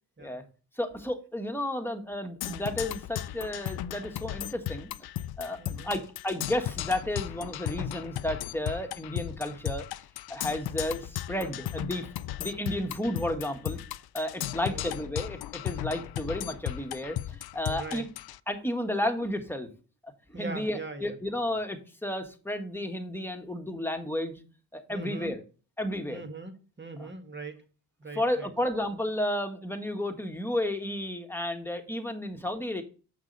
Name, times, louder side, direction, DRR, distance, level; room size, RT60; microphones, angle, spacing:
voice 1, 0.8-5.1 5.4-9.9 10.3-12.1 12.4-13.8 14.1-18.1 18.5-19.7 20.0-24.4 24.7-25.4 25.8-26.2 27.0-27.1 28.1-32.8, left 1 dB, 5° left, 5 dB, 1.7 m, -32 dB
Percussion, 2.4-18.4, left 13 dB, 65° left, 0.5 m, -36 dB
voice 2, 5.6-6.0 14.5-14.9 17.6-18.1 20.3-21.2 24.9-25.3 26.1-27.6 28.0-28.5, right 3 dB, 25° right, 6 dB, 1.8 m, -41 dB
7.5 x 6.1 x 4.2 m, 0.37 s
cardioid pair, 55°, 41 cm